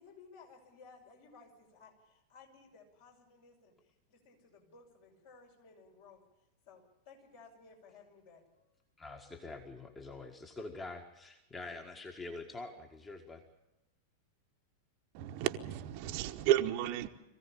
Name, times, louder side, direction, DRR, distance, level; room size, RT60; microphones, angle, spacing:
voice 1, 0.0-8.8, left 4 dB, 55° left, 0 dB, 5.9 m, -58 dB
voice 2, 9.0-13.4, left 3 dB, 15° left, 4 dB, 1.7 m, -45 dB
voice 3, 15.1-17.1, right 13 dB, 45° right, 7 dB, 1.1 m, -32 dB
22.5 x 15.5 x 8.7 m, 0.94 s
figure-of-eight pair, 90°, 0 cm